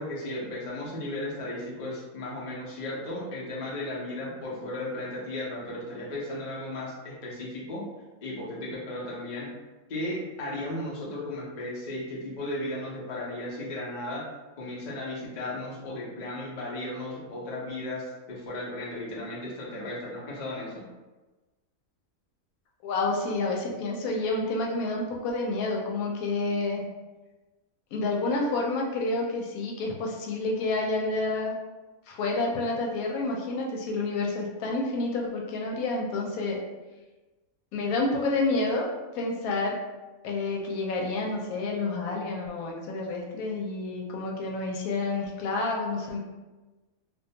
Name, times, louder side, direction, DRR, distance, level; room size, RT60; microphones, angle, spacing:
voice 1, 0.0-7.8 8.2-9.5 9.9-14.2 14.6-20.8, left 1 dB, 45° left, -5 dB, 0.6 m, -35 dB
voice 2, 22.8-26.8 27.9-31.5 32.1-36.6 37.7-38.9 39.1-39.8 40.2-46.2, left 3 dB, 90° left, 0 dB, 1.0 m, -29 dB
2.4 x 2.2 x 2.7 m, 1.2 s
omnidirectional pair, 1.5 m